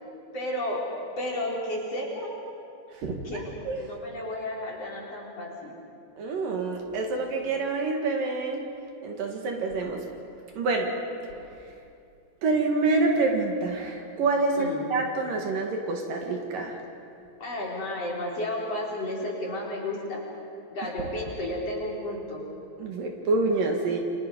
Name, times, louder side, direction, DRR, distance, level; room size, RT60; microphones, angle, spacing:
voice 1, 0.3-0.8 1.2-2.3 3.2-5.7 14.6-14.8 17.4-20.2 20.7-22.4, left 1 dB, 40° left, -3 dB, 4.8 m, -32 dB
voice 2, 2.9-3.8 6.2-8.6 9.0-10.0 10.6-10.9 11.3-11.4 12.4-16.8 22.8-24.0, right 3 dB, 65° right, 2 dB, 3.4 m, -27 dB
29.0 x 25.0 x 5.5 m, 2.5 s
omnidirectional pair, 4.5 m